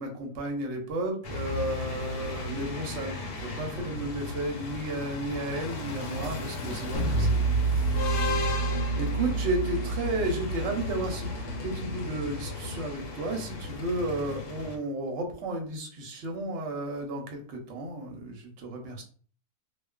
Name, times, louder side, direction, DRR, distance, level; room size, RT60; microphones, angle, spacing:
voice 1, 0.0-8.6 9.0-11.3 11.6-19.0, right 2 dB, 60° right, 2 dB, 0.8 m, -33 dB
sound 1, 1.2-14.8, left 3 dB, 85° left, 1.1 m, -35 dB
sound 2, 6.9-12.9, right 4 dB, 60° left, 0.6 m, -30 dB
2.4 x 2.3 x 2.2 m, 0.43 s
omnidirectional pair, 1.7 m